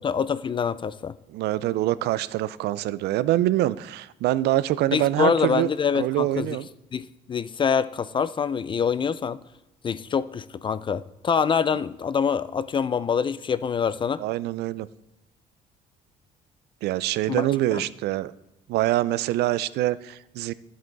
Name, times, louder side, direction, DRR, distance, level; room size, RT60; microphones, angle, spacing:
voice 1, 0.0-1.1 4.9-6.6 6.9-9.4 9.8-14.2 17.3-17.5 17.7-17.8, left 6 dB, 30° left, 16 dB, 0.3 m, -25 dB
voice 2, 1.3-5.7 5.9-6.7 14.2-14.9 16.8-18.3 18.7-20.5, right 15 dB, 75° right, 17 dB, 0.4 m, -25 dB
9.9 x 7.6 x 4.0 m, 0.92 s
cardioid pair, 110°, 17 cm